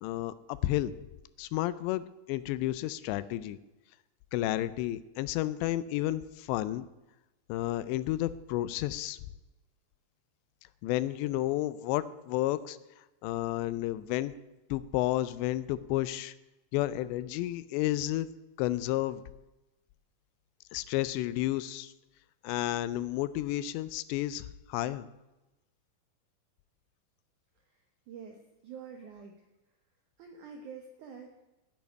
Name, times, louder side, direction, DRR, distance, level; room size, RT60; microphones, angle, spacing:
voice 1, 0.0-0.9 1.4-3.6 4.3-6.9 7.5-9.2 10.8-12.8 13.2-14.3 14.7-16.3 16.7-18.3 18.6-19.2 20.7-21.9 22.4-25.1, left 15 dB, 85° left, 15 dB, 2.7 m, -31 dB
voice 2, 27.6-29.5 30.2-31.4, right 6 dB, 75° right, 3 dB, 1.8 m, -47 dB
10.5 x 8.6 x 9.8 m, 1.0 s
omnidirectional pair, 5.1 m